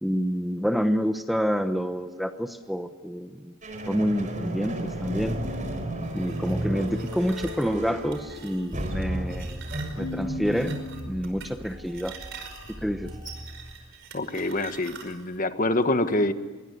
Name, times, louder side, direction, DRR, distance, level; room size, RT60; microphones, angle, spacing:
voice 1, 0.0-3.5 3.9-5.4 6.1-9.6 10.0-10.8 11.1-12.2 12.8-13.1, equal, ahead, 7 dB, 1.0 m, -28 dB
sound 1, 3.6-13.7, right 1 dB, 35° right, 5.0 m, -34 dB
sound 2, 6.0-15.4, right 6 dB, 60° right, 5.2 m, -45 dB
Keyboard (musical), 10.0-11.8, left 2 dB, 90° left, 3.4 m, -37 dB
voice 2, 14.1-16.3, left 2 dB, 40° left, 9 dB, 1.5 m, -25 dB
26.0 x 23.0 x 9.7 m, 1.3 s
head